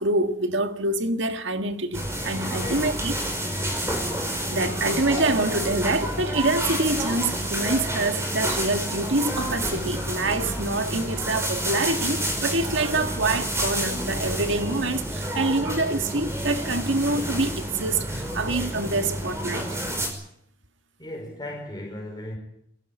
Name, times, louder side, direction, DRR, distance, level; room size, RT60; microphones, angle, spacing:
voice 1, 0.0-3.1 4.5-19.7, right 2 dB, 85° right, 1.7 m, -26 dB
sound 1, 1.9-20.1, right 1 dB, 15° right, 5.5 m, -29 dB
voice 2, 2.5-3.0 21.0-22.4, left 1 dB, 20° left, 5.0 m, -36 dB
22.5 x 16.5 x 9.0 m
head